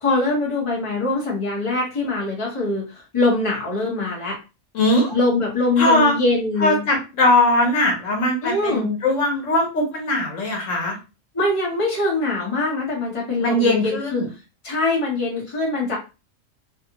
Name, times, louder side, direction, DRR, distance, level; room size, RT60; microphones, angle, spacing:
voice 1, 0.0-4.4 5.1-6.8 8.4-8.9 11.3-14.2 14.6-16.0, left 2 dB, 25° left, -3 dB, 1.1 m, -23 dB
voice 2, 4.7-5.1 5.8-6.1 6.6-11.0 13.4-14.3, left 1 dB, 75° left, 1 dB, 1.2 m, -20 dB
2.7 x 2.5 x 2.8 m, 0.30 s
omnidirectional pair, 1.3 m